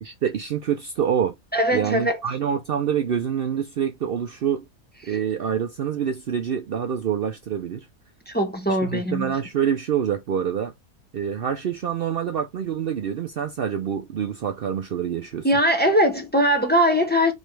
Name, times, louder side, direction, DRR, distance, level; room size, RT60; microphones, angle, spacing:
voice 1, 0.0-1.3 1.7-4.6 5.1-7.9 8.8-10.7 11.1-15.5, right 8 dB, 85° right, 0.5 m, -26 dB
voice 2, 1.5-2.2 5.1-5.2 8.3-9.3 15.4-17.3, equal, 10° left, 0.8 m, -21 dB
5.3 x 3.1 x 3.1 m
omnidirectional pair, 1.7 m